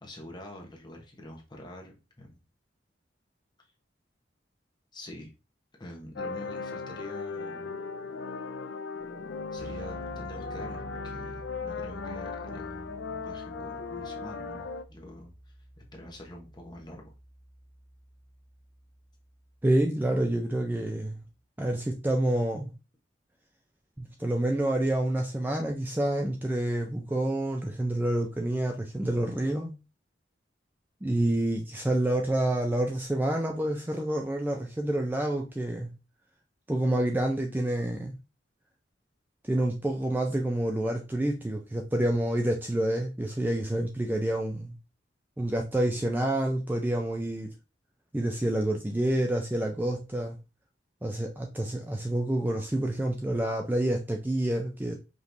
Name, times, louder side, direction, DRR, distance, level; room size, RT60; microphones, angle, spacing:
voice 1, 0.0-2.4 4.9-5.3 5.8-7.7 9.5-17.1, left 1 dB, 25° left, 1.1 m, -46 dB
sound 1, 6.2-14.8, left 4 dB, 70° left, 0.5 m, -37 dB
Keyboard (musical), 9.0-9.1 9.3-19.9, right 1 dB, 55° right, 1.6 m, -49 dB
voice 2, 19.6-21.2 21.6-22.7 24.0-29.8 31.0-35.9 36.7-38.2 39.4-44.8 45.4-47.5 48.1-50.4 51.0-55.0, right 1 dB, 10° right, 0.4 m, -28 dB
5.1 x 3.1 x 2.6 m
head